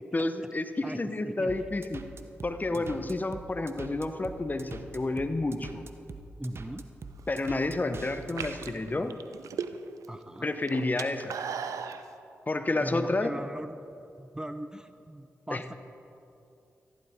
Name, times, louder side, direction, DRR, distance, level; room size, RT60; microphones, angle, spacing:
voice 1, 0.1-2.0 2.4-5.8 7.3-9.1 10.4-11.4 12.5-13.3 15.5-15.6, left 2 dB, 30° left, 9 dB, 0.9 m, -30 dB
voice 2, 0.8-1.5 2.7-3.2 6.4-6.8 10.1-10.5 12.8-15.7, right 1 dB, 10° right, 10 dB, 0.7 m, -40 dB
sound 1, 1.5-8.7, right 3 dB, 50° right, 0.9 m, -43 dB
sound 2, 7.2-7.6 8.2-10.1 10.4-12.0, right 7 dB, 80° right, 0.6 m, -36 dB
14.5 x 11.5 x 5.1 m, 2.7 s
supercardioid pair, 45°, 5 cm